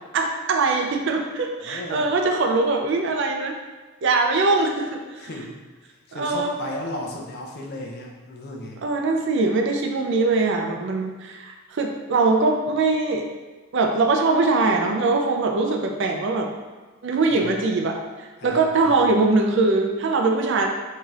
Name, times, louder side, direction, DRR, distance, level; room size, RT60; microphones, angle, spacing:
voice 1, 0.1-3.6 4.0-5.0 6.1-6.5 8.8-13.2 13.7-16.5 17.0-18.0 18.4-20.7, right 3 dB, 60° right, 2 dB, 0.4 m, -22 dB
voice 2, 1.6-2.1 5.2-5.6 6.1-8.8 17.3-17.5 18.4-19.0, left 1 dB, 50° left, -1 dB, 0.6 m, -35 dB
4.8 x 2.8 x 2.4 m, 1.3 s
head